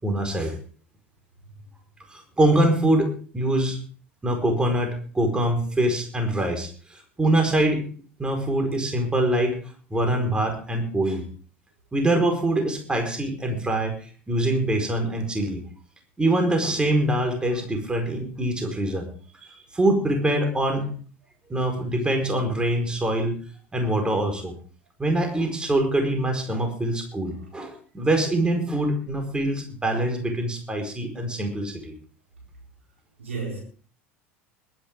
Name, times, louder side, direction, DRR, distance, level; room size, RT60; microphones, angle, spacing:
voice 1, 0.0-0.5 2.1-3.8 4.2-7.9 8.2-9.6 9.9-11.2 11.9-15.6 16.2-19.1 19.7-20.9 21.5-23.4 23.7-24.5 25.0-31.9, right 1 dB, 15° right, 4.7 m, -24 dB
voice 2, 33.2-33.6, right 4 dB, 80° right, 4.2 m, -33 dB
22.0 x 11.0 x 3.7 m
figure-of-eight pair, 75°, 7 cm